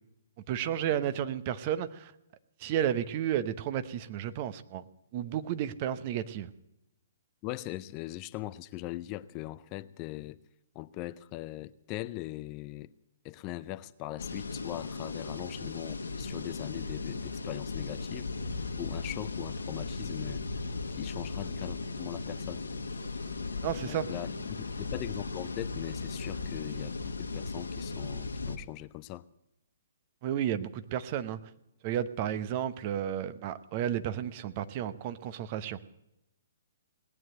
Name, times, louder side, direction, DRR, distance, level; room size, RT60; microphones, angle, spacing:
voice 1, 0.5-2.1 2.6-4.8 5.1-6.5 23.6-24.1 30.2-31.4 31.8-35.8, right 10 dB, 35° right, 0.9 m, -32 dB
voice 2, 7.4-10.4 10.7-12.9 13.2-20.4 20.9-22.7 23.8-29.3, left 16 dB, 30° left, 0.5 m, -40 dB
sound 1, 14.2-28.6, left 3 dB, 75° left, 1.4 m, -37 dB
18.5 x 9.3 x 7.8 m
figure-of-eight pair, 125°, 0 cm